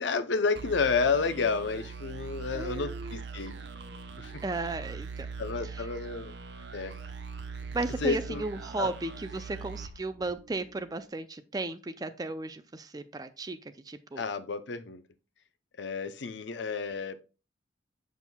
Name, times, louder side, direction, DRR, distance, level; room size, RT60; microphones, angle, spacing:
voice 1, 0.0-3.5 4.2-4.3 5.4-6.3 6.7-7.0 8.0-8.4 8.8-8.9 14.2-15.0 15.8-17.2, left 4 dB, 75° left, 12 dB, 0.6 m, -30 dB
sound 1, 0.6-10.9, right 4 dB, 70° right, 0.8 m, -41 dB
voice 2, 2.5-3.2 4.4-5.3 5.7-5.9 7.7-13.6 13.9-14.2, right 2 dB, 20° right, 11 dB, 0.4 m, -35 dB
7.2 x 6.1 x 2.2 m, 0.31 s
head